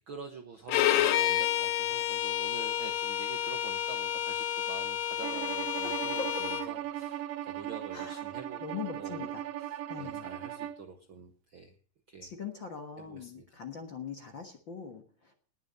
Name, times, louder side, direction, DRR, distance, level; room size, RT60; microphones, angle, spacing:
voice 1, 0.1-11.7 12.1-12.3 13.0-13.6, right 5 dB, 60° right, 6 dB, 1.3 m, -47 dB
Bowed string instrument, 0.7-6.7, left 11 dB, 85° left, 2.7 m, -30 dB
Bowed string instrument 2, 5.2-10.8, right 12 dB, 80° right, 1.3 m, -38 dB
voice 2, 5.8-6.5 7.9-8.2 8.6-9.4 9.9-10.2 12.2-15.3, left 6 dB, 50° left, 5 dB, 1.6 m, -41 dB
19.5 x 7.2 x 5.5 m, 0.42 s
omnidirectional pair, 4.0 m